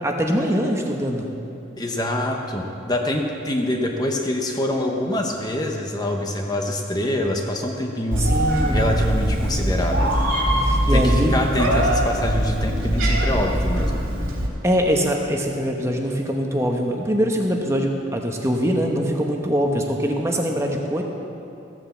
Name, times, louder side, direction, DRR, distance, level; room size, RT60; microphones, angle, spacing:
voice 1, 0.0-1.3 8.2-8.8 10.6-11.3 14.6-21.0, equal, 15° right, 1 dB, 1.0 m, -23 dB
voice 2, 1.8-8.2 8.7-10.1 10.9-14.0, left 1 dB, 20° left, 2 dB, 0.9 m, -25 dB
Meow, 8.1-14.5, equal, 90° right, 2.8 m, -22 dB
15.0 x 8.8 x 7.2 m, 2.7 s
head